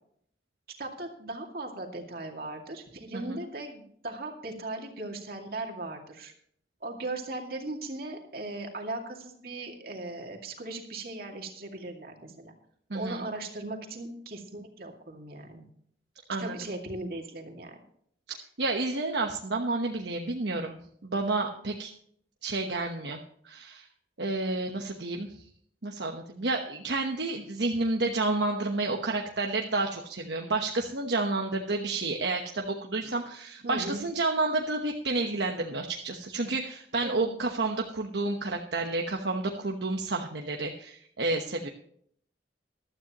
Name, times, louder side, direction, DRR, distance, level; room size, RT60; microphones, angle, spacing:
voice 1, 0.8-6.3 6.8-12.5 12.9-15.7 16.4-17.7 33.6-34.0 37.0-37.3, right 2 dB, 55° right, 2 dB, 2.3 m, -38 dB
voice 2, 12.9-13.3 16.3-16.6 18.3-21.9 22.4-23.2 23.4-23.9 24.2-25.3 25.8-41.7, right 3 dB, 70° right, 2 dB, 1.1 m, -30 dB
15.0 x 12.5 x 3.0 m, 0.64 s
head